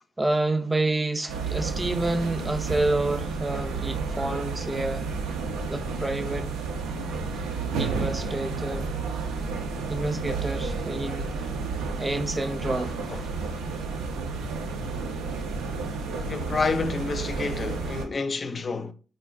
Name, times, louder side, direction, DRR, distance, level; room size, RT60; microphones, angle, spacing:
voice 1, 0.2-5.1 5.7-6.5 7.8-8.9 9.9-11.3 12.0-13.0, right 2 dB, 20° right, 0.4 m, -28 dB
sound 1, 1.3-18.1, right 4 dB, 85° right, 0.4 m, -31 dB
voice 2, 13.1-13.6 16.2-18.9, left 4 dB, 45° left, 0.4 m, -29 dB
3.6 x 2.1 x 2.4 m
supercardioid pair, 50°, 0 cm